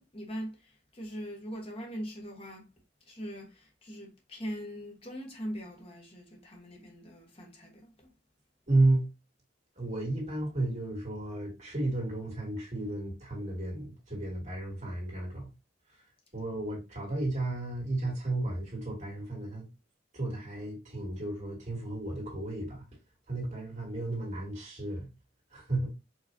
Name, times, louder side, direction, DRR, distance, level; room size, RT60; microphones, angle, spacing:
voice 1, 0.0-2.7 3.1-8.1, equal, 30° left, 1.4 m, -41 dB
voice 2, 8.7-9.1 9.8-15.5 16.3-19.7 20.1-22.8 23.3-25.1 25.5-25.9, right 2 dB, 40° right, 2.5 m, -32 dB
4.9 x 3.1 x 2.7 m
head